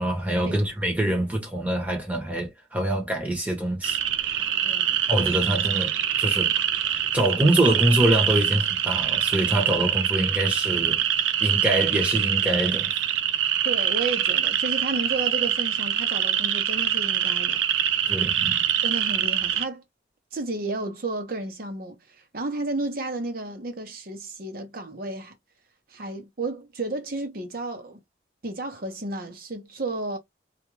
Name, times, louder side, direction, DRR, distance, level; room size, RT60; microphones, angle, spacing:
voice 1, 0.0-4.5 5.1-6.6 6.8-11.0 11.4-12.9 18.1-18.6, right 1 dB, 10° right, 0.9 m, -25 dB
sound 1, 3.8-19.6, right 10 dB, 75° right, 0.4 m, -24 dB
voice 2, 4.6-5.0 13.6-17.6 18.8-19.8 20.3-25.3 25.9-28.0 28.4-30.2, right 2 dB, 50° right, 0.8 m, -32 dB
2.4 x 2.2 x 3.0 m
head